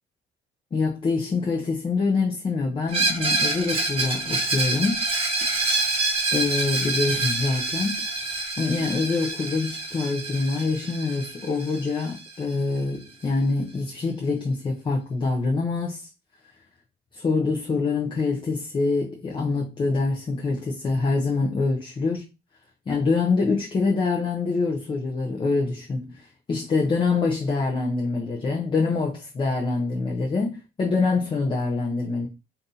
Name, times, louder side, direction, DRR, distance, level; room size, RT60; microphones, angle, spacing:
voice 1, 0.7-5.0 5.4-5.5 6.3-8.1 8.6-16.1 17.1-22.2 22.9-32.3, left 3 dB, 30° left, 0.7 m, -25 dB
Screech, 2.9-12.5, right 3 dB, 35° right, 1.2 m, -27 dB
2.7 x 2.6 x 3.8 m
cardioid pair, 110°, 17 cm